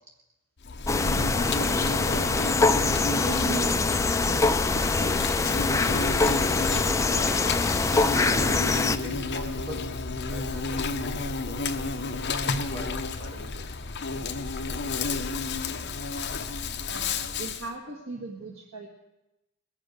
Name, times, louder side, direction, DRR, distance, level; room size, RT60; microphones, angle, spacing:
Insect, 0.6-17.7, left 3 dB, 55° left, 0.9 m, -31 dB
sound 1, 0.9-9.0, left 3 dB, 15° left, 0.4 m, -24 dB
voice 1, 1.3-2.5 3.1-4.5 15.4-15.9 16.9-18.9, right 3 dB, 90° right, -1 dB, 1.7 m, -39 dB
voice 2, 7.0-7.5 7.9-10.0 10.3-11.9 12.3-13.7, equal, 70° right, -3 dB, 4.1 m, -41 dB
21.5 x 7.5 x 6.4 m, 0.95 s
head